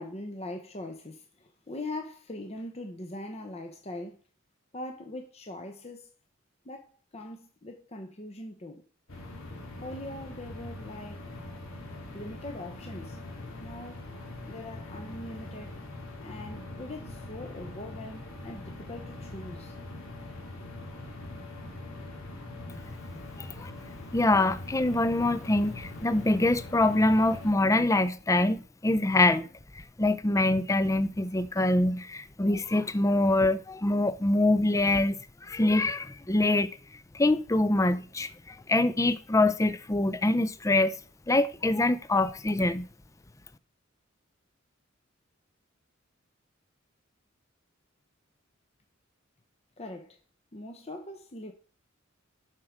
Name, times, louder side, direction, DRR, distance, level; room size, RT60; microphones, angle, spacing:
voice 1, 0.0-4.2 4.7-6.1 6.6-8.8 9.8-11.2 12.1-13.2 13.6-14.0 14.4-15.8 16.2-19.7 49.8-50.2 50.5-51.5, left 1 dB, 30° left, 0.8 m, -41 dB
sound 1, 9.1-27.5, left 2 dB, 75° left, 2.3 m, -42 dB
voice 2, 23.4-23.7 24.1-29.5 30.0-35.2 35.4-36.7 37.1-40.9 41.3-42.8, left 2 dB, 15° left, 0.5 m, -25 dB
7.5 x 6.0 x 5.1 m
head